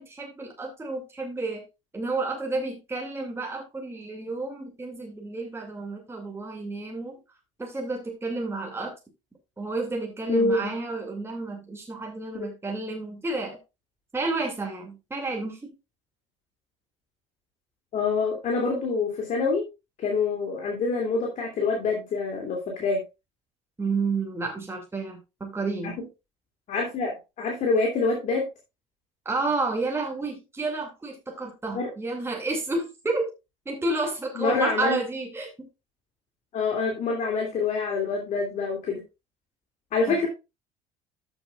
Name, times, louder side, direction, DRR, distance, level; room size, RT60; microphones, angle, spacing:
voice 1, 0.0-1.6 1.9-7.2 7.6-8.9 9.6-13.6 14.1-15.7 23.8-26.0 29.2-33.3 33.7-35.7 40.1-40.3, right 3 dB, 15° right, 1 dB, 2.5 m, -31 dB
voice 2, 10.3-10.7 12.4-12.5 17.9-19.6 20.0-23.0 25.8-25.9 26.7-28.5 31.7-31.9 34.4-35.0 36.5-39.0 39.9-40.3, left 4 dB, 45° left, 0 dB, 2.7 m, -26 dB
13.5 x 7.1 x 2.4 m, 0.26 s
figure-of-eight pair, 60°, 17 cm